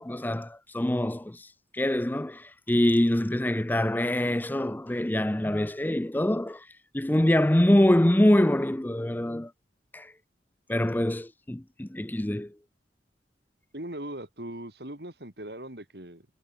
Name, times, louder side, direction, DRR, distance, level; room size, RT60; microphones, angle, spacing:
voice 1, 0.0-1.5 1.7-6.7 6.9-9.5 9.9-10.1 10.7-12.5, left 1 dB, 10° left, 0.5 m, -24 dB
voice 2, 13.7-16.3, right 1 dB, 65° right, 4.0 m, -39 dB
head